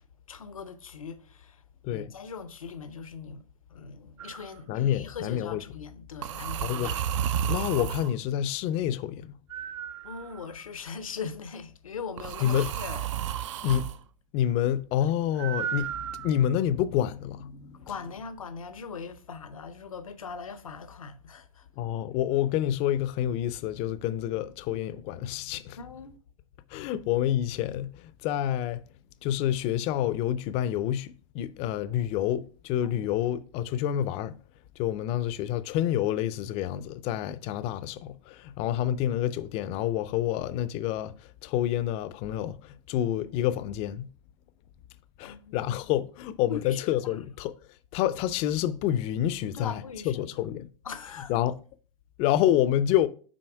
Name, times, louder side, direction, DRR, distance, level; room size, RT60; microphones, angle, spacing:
voice 1, 0.3-1.6 1.9-3.4 3.7-7.2 10.0-13.1 13.6-13.8 15.0-15.1 17.7-21.7 25.8-26.2 32.8-33.1 45.2-45.7 46.5-47.2 49.5-50.2 50.8-51.4, left 5 dB, 90° left, 0.7 m, -40 dB
sound 1, 4.2-4.5 6.2-8.1 9.5-10.6 12.2-14.0 15.4-16.6, right 9 dB, 65° right, 0.5 m, -32 dB
voice 2, 4.7-5.6 6.6-7.0 7.5-9.3 12.4-12.7 13.6-13.9 14.3-17.9 21.8-25.8 26.7-28.8 29.2-34.4 34.8-41.1 41.4-44.1 45.2-47.5 47.9-49.8 50.1-50.7 51.3-51.5 52.2-53.1, left 11 dB, 35° left, 0.5 m, -28 dB
6.3 x 4.1 x 4.6 m
hypercardioid pair, 115°, 17 cm